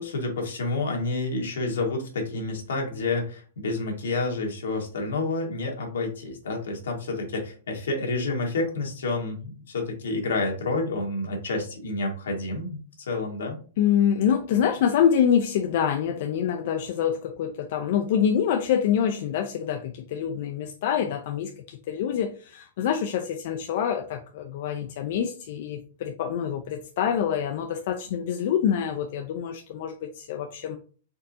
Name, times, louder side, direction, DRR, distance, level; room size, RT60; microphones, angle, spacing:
voice 1, 0.0-13.6, left 2 dB, 90° left, 1 dB, 1.6 m, -29 dB
voice 2, 13.8-30.8, left 8 dB, 60° left, 5 dB, 0.5 m, -26 dB
4.4 x 3.7 x 2.8 m, 0.39 s
hypercardioid pair, 140°, 0 cm